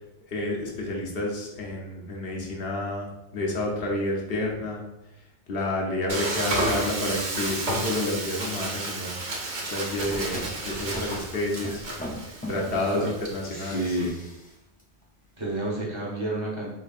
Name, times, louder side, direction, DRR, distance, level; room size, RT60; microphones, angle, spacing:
voice 1, 0.3-3.1 3.3-4.8 5.5-9.2 9.7-11.8 12.5-14.2, left 1 dB, 60° left, -1 dB, 1.1 m, -29 dB
Frying (food), 6.1-14.1, right 2 dB, 45° right, 0.8 m, -32 dB
voice 2, 6.6-7.2 12.7-13.1 13.5-14.1 15.4-16.7, right 1 dB, 25° right, -5 dB, 1.0 m, -31 dB
sound 1, 9.8-12.8 13.5-14.5 14.8-14.9, equal, 15° left, 0.4 m, -39 dB
4.3 x 3.5 x 2.4 m, 0.88 s
omnidirectional pair, 1.2 m